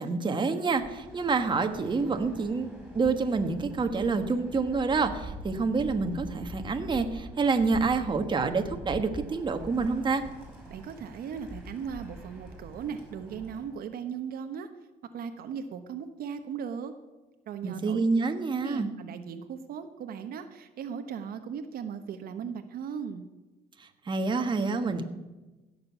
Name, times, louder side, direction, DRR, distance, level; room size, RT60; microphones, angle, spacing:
voice 1, 0.0-2.7 2.9-10.2 17.6-18.9 23.8-25.0, right 4 dB, 30° right, 6 dB, 1.3 m, -27 dB
Bird, 0.7-13.8, right 1 dB, 5° right, 5.1 m, -45 dB
voice 2, 10.7-14.7 15.1-16.9 17.5-18.0 18.5-23.3, right 7 dB, 65° right, 7 dB, 1.1 m, -37 dB
16.0 x 6.8 x 8.3 m, 1.1 s
cardioid pair, 105°, 17 cm